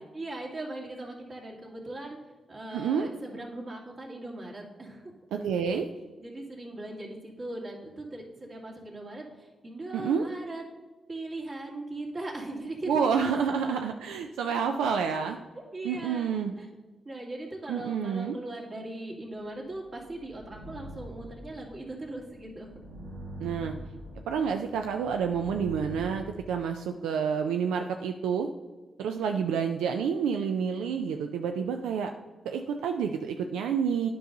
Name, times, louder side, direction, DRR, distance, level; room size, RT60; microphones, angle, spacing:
voice 1, 0.1-2.2 2.5-5.1 6.2-10.6 11.1-13.3 15.5-16.3 16.6-16.7 17.0-22.7 29.2-29.4, right 2 dB, 50° right, -2 dB, 2.3 m, -39 dB
voice 2, 2.7-3.1 5.3-5.9 9.9-10.3 12.9-15.4 15.8-16.5 17.7-18.3 23.4-23.7 24.3-28.5 29.0-32.1 32.4-34.1, right 6 dB, 90° right, 5 dB, 0.3 m, -29 dB
sound 1, 19.7-26.1, right 1 dB, 65° right, 1.4 m, -44 dB
9.3 x 5.5 x 3.8 m, 1.3 s
supercardioid pair, 45°, 0 cm